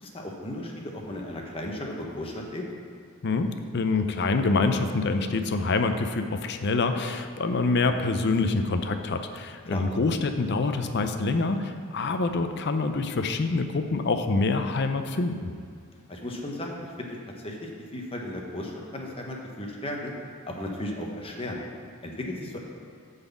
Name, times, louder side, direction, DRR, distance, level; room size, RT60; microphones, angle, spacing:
voice 1, 0.0-2.6 9.7-9.9 16.1-17.2 17.4-20.1 20.5-21.6 22.0-22.6, left 1 dB, 25° left, 0 dB, 1.0 m, -35 dB
voice 2, 3.2-15.5, left 3 dB, 50° left, 7 dB, 0.5 m, -26 dB
8.7 x 4.1 x 7.1 m, 2.2 s
head